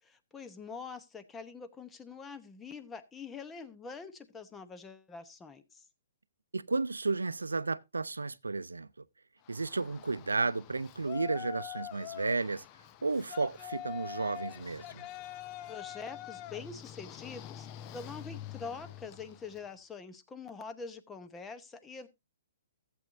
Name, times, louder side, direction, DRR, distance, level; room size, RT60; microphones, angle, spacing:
voice 1, 0.0-5.8 15.6-22.1, left 5 dB, 15° left, 0.9 m, -45 dB
voice 2, 6.5-8.9 9.5-12.6 13.0-15.1, right 3 dB, 85° right, 0.5 m, -33 dB
Yell, 9.5-19.7, left 12 dB, 30° left, 0.5 m, -45 dB
15.0 x 7.9 x 2.6 m
hypercardioid pair, 130°, 0 cm